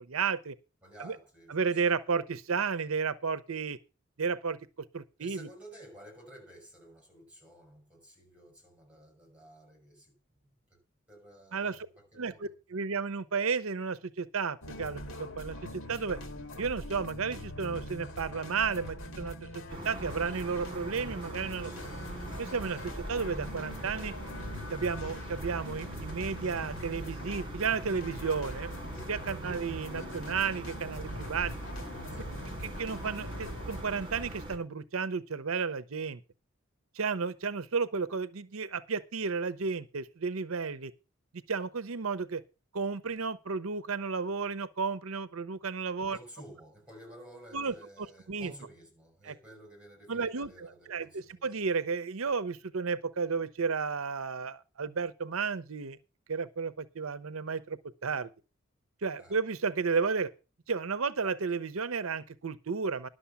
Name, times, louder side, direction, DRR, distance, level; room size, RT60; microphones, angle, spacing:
voice 1, 0.1-0.5 1.0-1.2 1.5-3.8 4.2-4.6 4.9-5.5 11.5-11.8 12.2-15.6 15.9-16.2 16.6-21.7 22.4-24.1 24.7-28.7 29.1-31.5 32.6-36.2 36.9-40.9 41.5-42.4 42.7-46.2 47.5-47.7 48.3-48.5 49.2-49.3 50.1-56.0 56.3-58.3 59.0-60.3 60.7-63.1, right 5 dB, 90° right, 0.7 m, -33 dB
voice 2, 0.8-1.9 5.2-10.1 10.7-10.8 11.1-12.5 32.1-32.4 46.1-51.5 59.2-59.4, right 1 dB, 5° right, 7.0 m, -53 dB
sound 1, 14.6-33.8, left 1 dB, 80° left, 2.3 m, -42 dB
sound 2, 19.7-34.6, right 1 dB, 25° right, 3.1 m, -43 dB
11.5 x 6.6 x 7.0 m
head